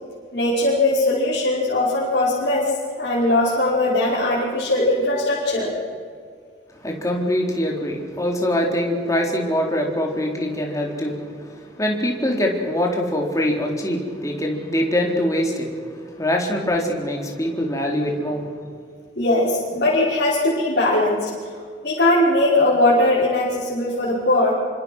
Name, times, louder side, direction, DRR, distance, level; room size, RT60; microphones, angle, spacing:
voice 1, 0.3-5.7 19.2-24.5, left 1 dB, 60° left, -8 dB, 5.7 m, -20 dB
voice 2, 6.8-11.5 11.8-15.7 16.2-18.5, left 1 dB, 20° left, 0 dB, 4.0 m, -23 dB
27.0 x 25.0 x 6.4 m, 2.1 s
head